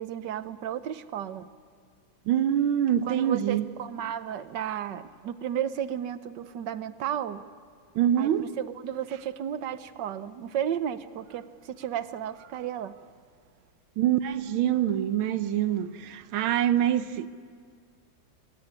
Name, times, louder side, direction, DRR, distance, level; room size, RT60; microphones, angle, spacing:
voice 1, 0.0-1.5 3.1-7.4 8.2-12.9, right 10 dB, 65° right, 1.5 m, -33 dB
voice 2, 2.3-3.6 7.9-8.6 14.0-17.3, right 10 dB, 90° right, 1.7 m, -25 dB
26.0 x 16.5 x 9.8 m
omnidirectional pair, 2.2 m